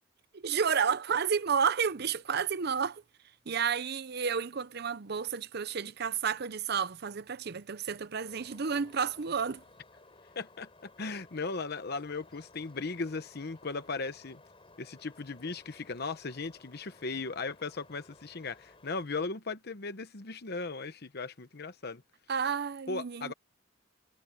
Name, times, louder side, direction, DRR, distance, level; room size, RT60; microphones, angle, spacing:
voice 1, 0.3-3.0 3.5-9.6 22.3-23.3, right 6 dB, 55° right, 0.7 m, -31 dB
sound 1, 8.2-19.1, left 2 dB, 30° left, 6.9 m, -58 dB
voice 2, 10.3-14.4 14.8-22.0 22.9-23.3, left 4 dB, 55° left, 1.0 m, -37 dB
head